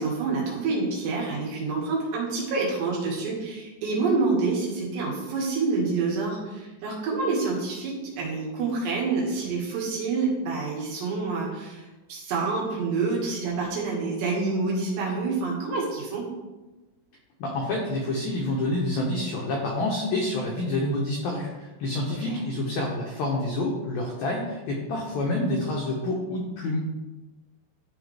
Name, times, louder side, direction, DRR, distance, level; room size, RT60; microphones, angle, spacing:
voice 1, 0.0-16.3 22.1-22.4, right 4 dB, 65° right, -3 dB, 3.7 m, -27 dB
voice 2, 17.4-26.9, left 2 dB, 80° left, -1 dB, 2.1 m, -28 dB
12.5 x 4.9 x 3.4 m, 1.1 s
omnidirectional pair, 5.6 m